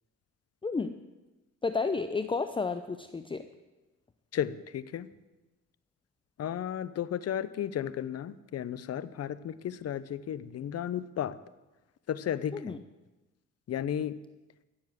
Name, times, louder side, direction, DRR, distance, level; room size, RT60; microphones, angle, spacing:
voice 1, 0.6-1.0 1.6-3.5 12.5-12.8, left 4 dB, 15° left, 9 dB, 0.6 m, -31 dB
voice 2, 4.3-5.1 6.4-11.4 12.1-12.7 13.7-14.1, left 10 dB, 55° left, 16 dB, 0.8 m, -34 dB
17.0 x 7.3 x 7.5 m, 1.1 s
cardioid pair, 90°, 30 cm